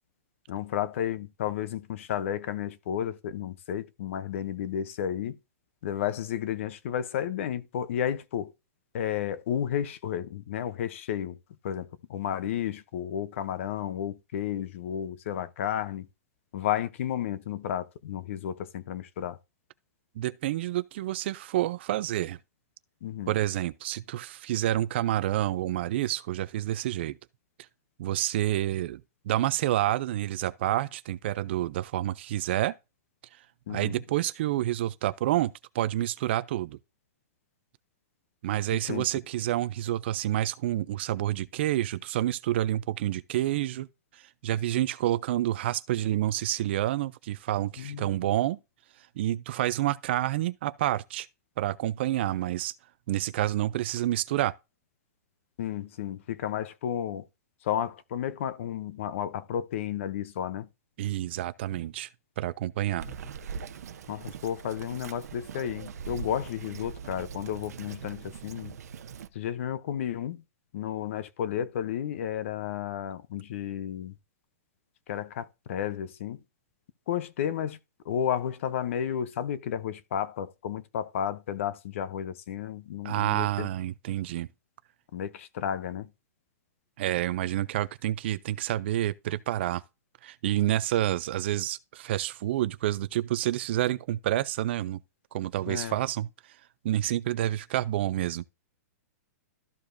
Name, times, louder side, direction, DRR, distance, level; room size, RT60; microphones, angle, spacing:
voice 1, 0.5-5.4 5.8-8.5 8.9-11.4 11.6-16.1 16.5-19.4 23.0-23.4 33.7-34.0 38.7-39.2 47.8-48.1 55.6-57.3 57.6-60.7 63.1-63.2 64.1-68.8 69.3-70.4 70.7-74.1 75.1-76.4 77.1-77.8 78.0-83.7 85.1-86.1 95.7-96.0, left 10 dB, 50° left, 0.7 m, -32 dB
voice 2, 20.2-22.4 23.3-27.2 28.0-29.0 29.3-32.7 33.7-36.8 38.4-43.9 44.1-48.6 49.2-51.3 51.6-52.7 53.1-54.5 61.0-62.1 62.4-63.1 83.0-84.5 87.0-89.8 90.2-95.0 95.3-96.3 96.8-98.4, right 13 dB, 45° right, 0.4 m, -28 dB
Bird vocalization bird call bird song, 63.0-69.3, right 7 dB, 75° right, 0.7 m, -41 dB
13.0 x 4.9 x 2.6 m
hypercardioid pair, 165°, 9 cm